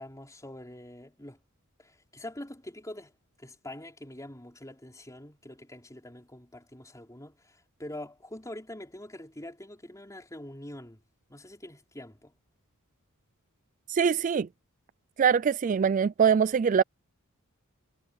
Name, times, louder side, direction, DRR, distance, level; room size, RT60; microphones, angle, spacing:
voice 1, 0.0-1.4 1.8-3.1 3.4-11.0 11.3-12.3, left 1 dB, 15° left, 4.1 m, -44 dB
voice 2, 13.9-14.5 15.2-16.8, right 7 dB, 35° right, 0.3 m, -23 dB
head